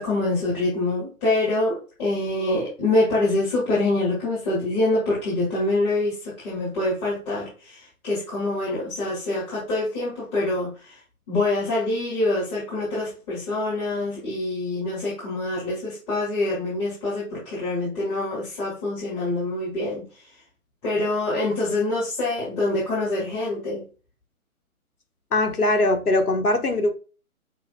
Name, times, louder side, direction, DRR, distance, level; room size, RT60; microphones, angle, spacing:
voice 1, 0.0-11.0 11.3-20.0 20.8-23.8, left 2 dB, 25° left, 2.6 m, -25 dB
voice 2, 25.3-26.9, left 2 dB, 90° left, 1.2 m, -21 dB
7.2 x 2.8 x 2.2 m
figure-of-eight pair, 140°, 44 cm